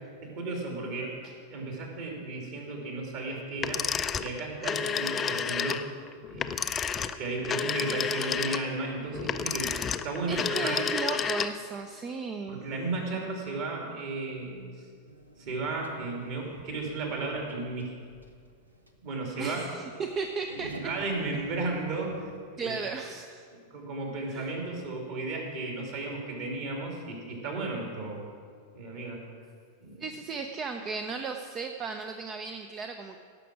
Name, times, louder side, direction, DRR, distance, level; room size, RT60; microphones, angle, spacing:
voice 1, 0.2-3.9 4.2-5.9 6.3-6.6 7.2-9.7 10.0-10.8 12.5-14.7 15.4-17.9 19.0-19.6 20.5-22.2 22.5-22.7 23.5-28.3 28.7-29.2 29.8-30.0, right 3 dB, 50° right, 0 dB, 2.9 m, -34 dB
sound 1, 3.6-11.8, left 7 dB, 20° left, 0.5 m, -30 dB
voice 2, 10.3-12.6 19.4-20.8 22.6-23.4 24.3-24.5 30.0-33.2, right 4 dB, 25° right, 6 dB, 0.6 m, -35 dB
sound 2, 15.0-22.4, right 1 dB, 80° right, 0.9 m, -50 dB
17.5 x 6.0 x 6.1 m, 2.2 s
figure-of-eight pair, 90°, 0 cm